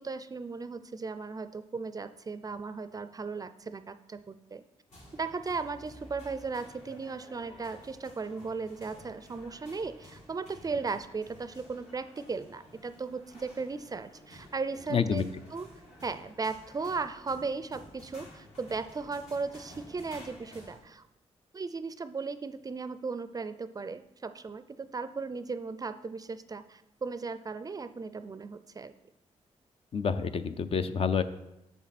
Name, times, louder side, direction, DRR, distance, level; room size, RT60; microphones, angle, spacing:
voice 1, 0.0-4.6 5.1-15.2 15.5-15.7 16.0-21.0 21.5-28.9, right 4 dB, 30° right, 12 dB, 0.4 m, -36 dB
sound 1, 4.9-20.8, equal, 65° left, 3.1 m, -53 dB
voice 2, 14.9-15.2 29.9-31.2, left 6 dB, 50° left, 11 dB, 0.5 m, -28 dB
7.1 x 7.1 x 4.2 m, 0.90 s
cardioid pair, 85°, 12 cm